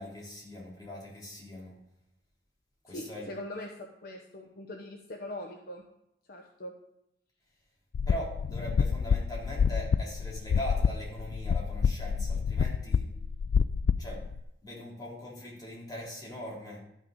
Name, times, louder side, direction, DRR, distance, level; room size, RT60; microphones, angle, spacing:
voice 1, 0.0-1.8 2.8-3.3 8.1-13.1 14.0-14.2 14.6-16.8, equal, 20° left, -5 dB, 3.6 m, -41 dB
voice 2, 2.9-3.7 4.0-5.8 6.3-6.7, left 1 dB, 55° left, 2 dB, 1.0 m, -41 dB
sound 1, 7.9-14.4, left 6 dB, 85° left, 0.3 m, -28 dB
12.5 x 6.5 x 5.1 m, 0.80 s
head